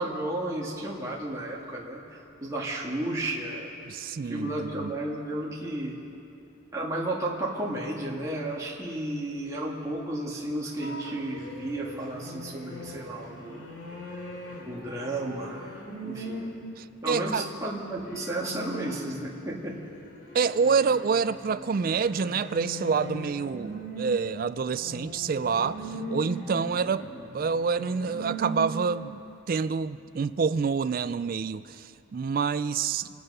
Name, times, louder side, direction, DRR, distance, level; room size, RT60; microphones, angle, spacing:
voice 1, 0.0-3.7 4.3-5.9 6.7-13.6 14.6-16.4 17.0-19.8, right 1 dB, 15° right, -4 dB, 1.8 m, -33 dB
voice 2, 3.9-4.9 16.8-17.5 20.3-27.1 27.3-33.1, right 5 dB, 45° right, 15 dB, 0.3 m, -27 dB
sound 1, 10.8-16.5 17.2-19.3 19.7-29.1, right 1 dB, 60° left, 3.2 m, -40 dB
26.5 x 9.4 x 5.4 m, 2.8 s
head